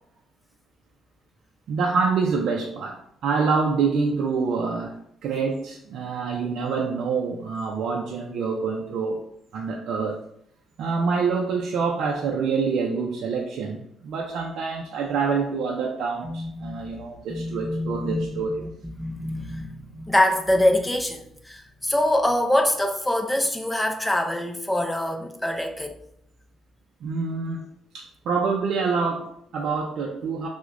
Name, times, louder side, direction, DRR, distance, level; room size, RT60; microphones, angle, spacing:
voice 1, 1.7-9.3 9.5-10.2 10.8-18.7 27.0-27.7 27.9-30.5, right 5 dB, 65° right, 0 dB, 0.4 m, -26 dB
voice 2, 16.2-16.9 17.3-26.0, left 1 dB, 5° left, 4 dB, 0.4 m, -25 dB
5.9 x 2.1 x 2.4 m, 0.70 s
cardioid pair, 165°, 0 cm